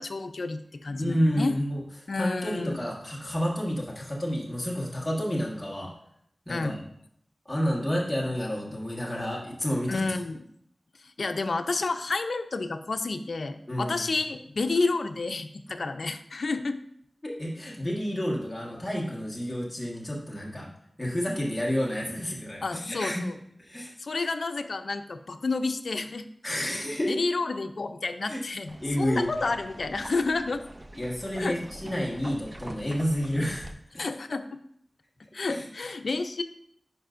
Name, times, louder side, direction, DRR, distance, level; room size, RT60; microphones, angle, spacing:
voice 1, 0.0-1.5 2.1-2.8 6.5-6.8 9.9-10.4 11.2-16.8 22.6-23.3 24.0-26.3 27.1-30.6 31.4-31.6 34.0-34.6 35.3-36.4, left 3 dB, 75° left, 8 dB, 0.5 m, -30 dB
voice 2, 1.0-1.8 2.1-5.9 6.5-6.8 7.4-10.0 13.7-14.1 17.2-20.7 21.0-23.3 23.6-23.9 26.4-27.1 28.3-28.4 28.8-29.3 30.9-33.7 35.5-35.6, equal, 10° left, -4 dB, 1.4 m, -30 dB
sound 1, 28.7-33.7, right 1 dB, 25° right, 0.5 m, -44 dB
9.9 x 5.5 x 2.6 m, 0.71 s
wide cardioid pair, 80°, 0 cm